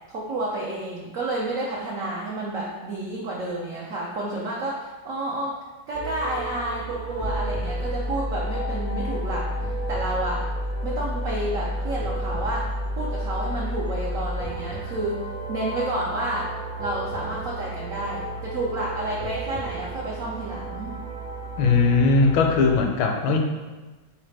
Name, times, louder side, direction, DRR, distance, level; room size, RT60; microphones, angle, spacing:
voice 1, 0.1-5.5 5.9-10.4 10.8-12.6 13.0-15.2 15.5-16.5 16.8-20.9, right 1 dB, 90° right, -4 dB, 0.7 m, -30 dB
sound 1, 5.9-22.8, right 1 dB, 50° right, 0.4 m, -31 dB
voice 2, 21.6-23.4, left 4 dB, 80° left, 3 dB, 1.4 m, -19 dB
4.1 x 3.9 x 3.2 m, 1.2 s
omnidirectional pair, 2.2 m